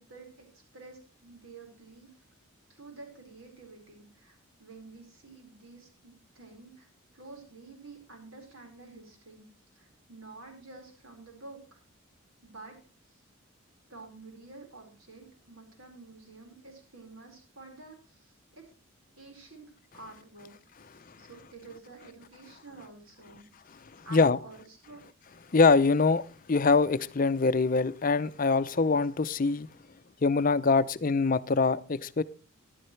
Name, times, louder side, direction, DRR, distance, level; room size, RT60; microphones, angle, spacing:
voice 1, 0.0-2.1 2.7-6.9 7.1-9.5 9.7-11.8 12.4-12.8 13.1-13.2 13.9-18.6 19.2-23.8 24.0-25.0, right 3 dB, 85° right, 4.7 m, -50 dB
voice 2, 25.5-26.2 26.5-29.7 30.2-32.2, left 4 dB, 40° left, 0.5 m, -24 dB
14.5 x 11.5 x 3.2 m
head